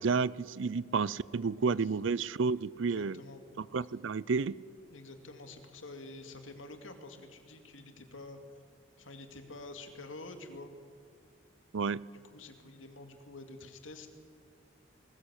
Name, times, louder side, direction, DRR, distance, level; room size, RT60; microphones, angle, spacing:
voice 1, 0.0-3.2 3.6-4.6 11.7-12.0, right 5 dB, 70° right, 21 dB, 0.5 m, -31 dB
voice 2, 2.4-3.4 4.9-8.4 9.0-10.7 12.3-14.1, left 2 dB, 90° left, 6 dB, 2.3 m, -48 dB
20.5 x 19.5 x 8.2 m, 2.3 s
head